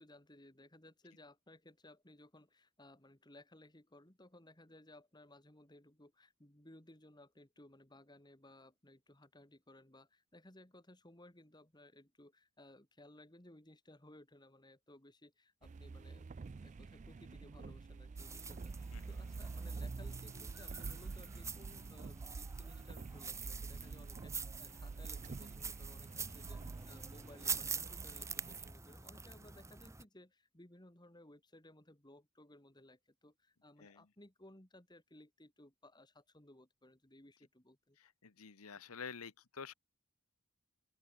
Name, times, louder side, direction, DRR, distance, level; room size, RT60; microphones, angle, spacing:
voice 1, 0.0-16.3 16.6-38.0, left 1 dB, 20° left, 2.4 m, -60 dB
sound 1, 15.6-28.7, right 4 dB, 35° right, 0.3 m, -48 dB
sound 2, 18.2-30.0, right 5 dB, 15° right, 1.2 m, -46 dB
voice 2, 38.0-39.7, left 6 dB, 90° left, 1.1 m, -49 dB
open air
head